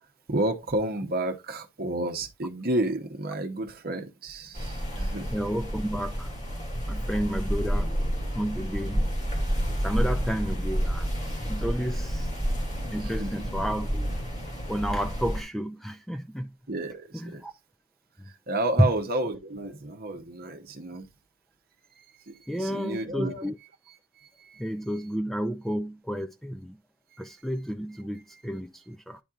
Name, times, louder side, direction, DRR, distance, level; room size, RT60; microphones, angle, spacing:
voice 1, 0.3-5.4 13.0-13.5 16.7-17.4 18.3-21.1 22.0-23.5 23.9-25.1 27.1-27.4 28.3-28.4, right 2 dB, 45° right, 1.0 m, -32 dB
sound 1, 4.5-15.4, equal, 30° left, 2.3 m, -30 dB
voice 2, 5.3-6.3 6.9-7.9 8.3-9.1 9.8-12.3 12.9-14.1 14.7-16.5 17.2-17.5 18.8-18.9 22.5-23.6 24.6-26.8 27.2-29.2, equal, ahead, 0.4 m, -31 dB
10.0 x 4.3 x 2.4 m
head